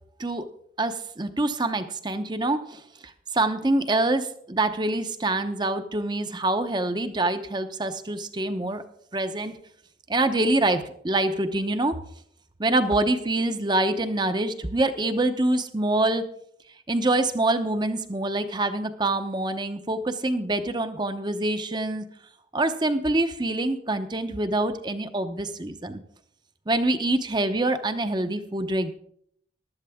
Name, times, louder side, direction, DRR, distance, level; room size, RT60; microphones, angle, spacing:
voice 1, 0.8-2.8 3.3-8.8 9.1-9.6 10.1-11.9 12.6-16.2 16.9-22.1 22.5-26.0 26.7-28.9, right 2 dB, 25° right, 10 dB, 0.8 m, -25 dB
14.5 x 12.0 x 3.6 m, 0.67 s
head